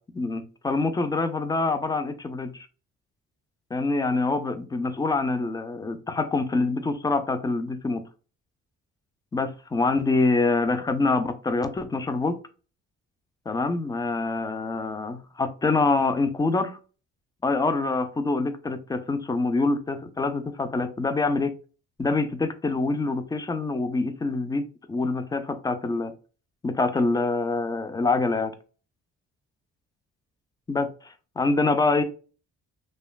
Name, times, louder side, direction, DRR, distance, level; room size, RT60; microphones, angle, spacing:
voice 1, 0.1-2.7 3.7-8.0 9.3-12.4 13.5-16.8 17.4-21.5 22.0-26.1 26.6-28.5 30.7-32.0, left 3 dB, 15° left, 9 dB, 0.3 m, -25 dB
3.0 x 2.3 x 2.2 m, 0.37 s
cardioid pair, 90°, 30 cm